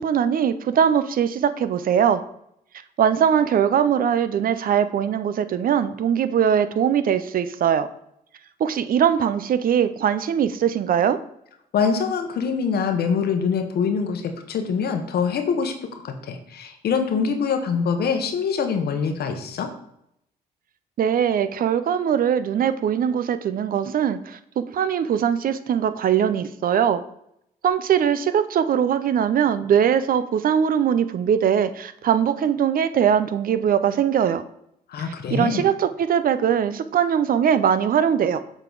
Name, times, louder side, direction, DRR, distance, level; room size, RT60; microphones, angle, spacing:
voice 1, 0.0-2.2 3.0-7.9 8.6-11.2 21.0-27.0 27.6-34.4 35.3-38.4, right 8 dB, 60° right, 12 dB, 0.5 m, -21 dB
voice 2, 11.7-19.7 34.9-35.6, left 6 dB, 75° left, 6 dB, 0.9 m, -24 dB
7.1 x 3.9 x 3.8 m, 0.76 s
cardioid pair, 65°, 17 cm